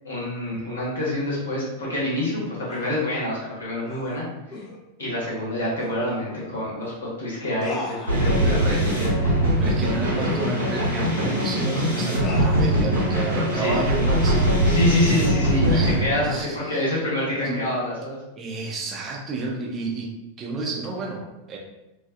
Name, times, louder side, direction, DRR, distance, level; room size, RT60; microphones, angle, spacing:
voice 1, 0.0-4.2 4.5-4.6 5.0-9.1 9.9-10.1 13.5-13.8 14.6-18.2, left 1 dB, 70° left, -6 dB, 1.0 m, -27 dB
sound 1, 2.7-3.0 3.9-4.1 4.5-4.8 5.8-5.9 6.3-6.5 6.8-6.9 7.6-8.5 8.9-9.1 9.5-9.6 10.1-11.6 12.2-12.7 13.3-13.7, left 2 dB, 30° left, 0.5 m, -37 dB
sound 2, 8.1-16.0, equal, 85° right, 1.0 m, -22 dB
voice 2, 8.4-8.8 9.6-14.5 15.7-17.0 17.4-17.6 18.4-20.1 20.4-21.6, right 3 dB, 25° right, -2 dB, 0.5 m, -31 dB
2.4 x 2.3 x 2.3 m, 0.98 s
figure-of-eight pair, 90°, 0 cm